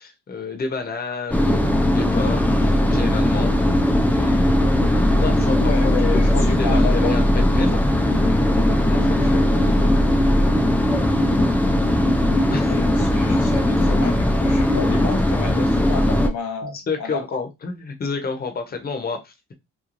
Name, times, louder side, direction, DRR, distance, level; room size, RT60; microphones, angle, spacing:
voice 1, 0.0-3.5 4.0-5.9 6.3-7.2 7.5-7.8 8.8-9.9 12.5-12.7 16.6-19.5, left 4 dB, 30° left, 0.8 m, -30 dB
sound 1, 1.3-16.3, left 1 dB, 5° left, 0.4 m, -18 dB
voice 2, 5.6-7.2 10.4-10.5 12.3-17.4, left 6 dB, 85° left, 0.8 m, -31 dB
3.0 x 2.3 x 2.5 m
cardioid pair, 90°, 30 cm